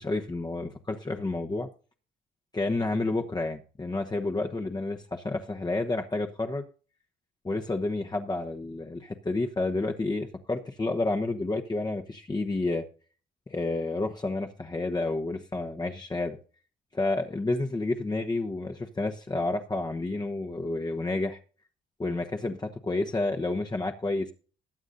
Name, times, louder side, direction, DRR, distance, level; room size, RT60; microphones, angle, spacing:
voice 1, 0.0-1.7 2.5-6.6 7.4-12.8 13.5-16.4 16.9-21.4 22.0-24.3, left 2 dB, 20° left, 2 dB, 1.1 m, -30 dB
21.0 x 8.0 x 2.7 m, 0.39 s
cardioid pair, 90°, 20 cm